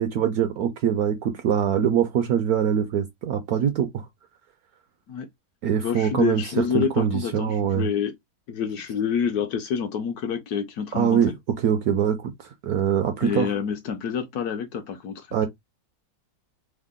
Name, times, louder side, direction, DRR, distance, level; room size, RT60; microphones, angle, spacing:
voice 1, 0.0-4.1 5.6-7.9 10.9-13.5 15.3-15.5, right 8 dB, 75° right, 0.9 m, -23 dB
voice 2, 5.8-8.1 8.5-11.2 13.2-15.5, left 7 dB, 70° left, 0.9 m, -27 dB
3.6 x 2.0 x 3.6 m
omnidirectional pair, 2.0 m